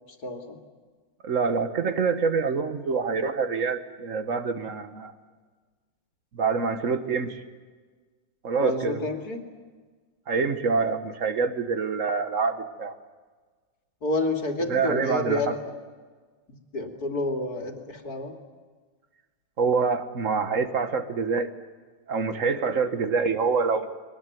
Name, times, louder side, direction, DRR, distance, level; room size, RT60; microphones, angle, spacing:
voice 1, 0.2-0.6 8.6-9.4 14.0-15.6 16.7-18.3, left 2 dB, 60° left, 4 dB, 3.0 m, -29 dB
voice 2, 1.2-5.1 6.3-7.4 8.4-9.0 10.3-12.9 14.7-15.6 19.6-21.5 22.1-23.9, right 5 dB, 50° right, 9 dB, 1.7 m, -26 dB
22.5 x 19.5 x 9.3 m, 1.4 s
omnidirectional pair, 1.9 m